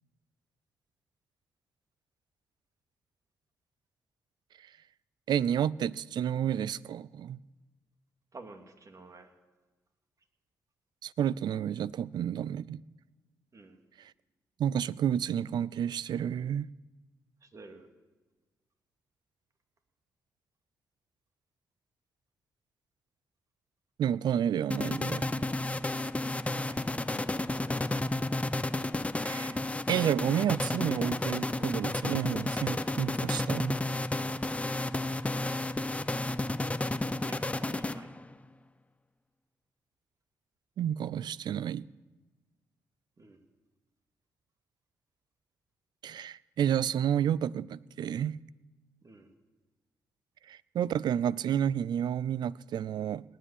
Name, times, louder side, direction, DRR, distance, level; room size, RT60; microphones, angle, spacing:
voice 1, 5.3-7.4 11.0-12.8 14.0-14.1 14.6-16.7 24.0-25.5 29.2-29.6 29.9-33.8 40.8-41.8 46.0-48.4 50.5-53.2, right 9 dB, 65° right, 0.4 m, -30 dB
voice 2, 8.3-9.3 13.5-13.8 17.4-17.9 26.5-27.0 37.2-38.1 43.2-43.4 49.0-49.3, right 3 dB, 45° right, 2.4 m, -51 dB
sound 1, 24.7-38.3, left 2 dB, 15° left, 0.7 m, -32 dB
18.5 x 7.6 x 10.0 m
supercardioid pair, 50°, 8 cm